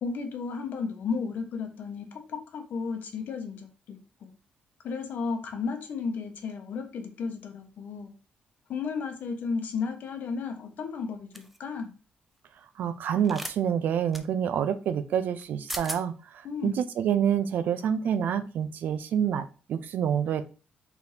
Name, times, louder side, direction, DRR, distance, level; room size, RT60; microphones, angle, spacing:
voice 1, 0.0-4.3 4.8-8.1 8.7-11.9 16.4-16.8, left 5 dB, 65° left, 6 dB, 0.9 m, -34 dB
sound 1, 11.3-11.6 13.2-13.6 14.1-14.2 15.4-15.5 15.7-16.0, equal, 5° right, 0.4 m, -36 dB
voice 2, 12.8-20.4, right 8 dB, 70° right, 11 dB, 0.5 m, -27 dB
4.8 x 3.4 x 2.7 m, 0.34 s
wide cardioid pair, 160°, 3 cm